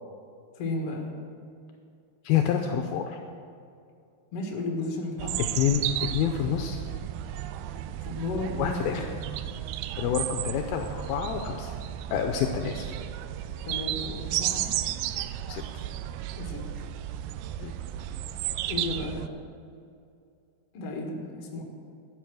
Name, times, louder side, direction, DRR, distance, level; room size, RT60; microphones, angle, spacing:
voice 1, 0.5-1.1 4.3-5.4 8.0-9.2 13.6-14.7 16.4-16.7 18.7-19.3 20.7-21.6, left 2 dB, 50° left, 0 dB, 2.2 m, -33 dB
voice 2, 2.2-3.2 5.6-6.8 8.6-9.1 10.0-11.7 12.1-12.9 15.5-15.6 17.6-17.7, left 8 dB, 80° left, 4 dB, 2.3 m, -27 dB
sound 1, 5.2-19.3, right 12 dB, 85° right, 2.2 m, -33 dB
13.0 x 8.1 x 6.3 m, 2.5 s
omnidirectional pair, 4.7 m